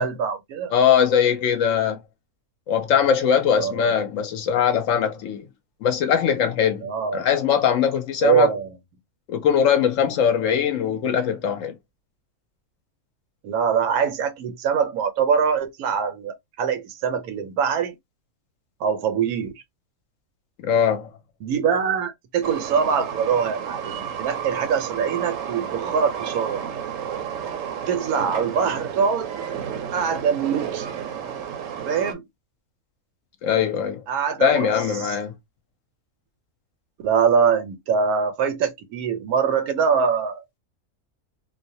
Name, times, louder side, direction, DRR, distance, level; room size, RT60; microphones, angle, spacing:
voice 1, 0.0-0.7 3.6-3.9 6.8-7.3 8.2-8.8 13.4-18.0 18.8-19.6 21.4-26.6 27.9-29.3 29.9-30.9 31.8-32.2 34.1-34.7 35.0-35.1 37.0-40.6, right 6 dB, 90° right, 1.2 m, -23 dB
voice 2, 0.7-2.0 2.7-5.5 5.8-8.5 9.3-11.8 20.6-21.1 33.4-34.0 34.4-35.4, left 8 dB, 65° left, 0.9 m, -21 dB
Train, 22.4-32.1, right 8 dB, 70° right, 0.9 m, -32 dB
2.6 x 2.1 x 2.6 m
omnidirectional pair, 1.5 m